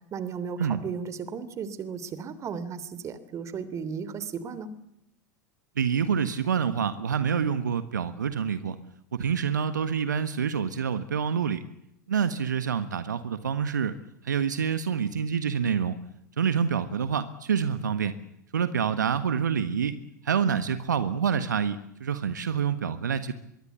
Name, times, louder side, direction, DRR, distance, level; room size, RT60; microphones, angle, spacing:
voice 1, 0.1-4.7, right 6 dB, 30° right, 15 dB, 3.1 m, -35 dB
voice 2, 5.8-8.8 9.1-11.6 12.1-13.9 14.2-16.0 16.4-18.2 18.5-20.0 20.2-23.3, right 7 dB, 75° right, 12 dB, 1.5 m, -27 dB
24.5 x 22.5 x 8.4 m, 0.79 s
figure-of-eight pair, 85°, 10 cm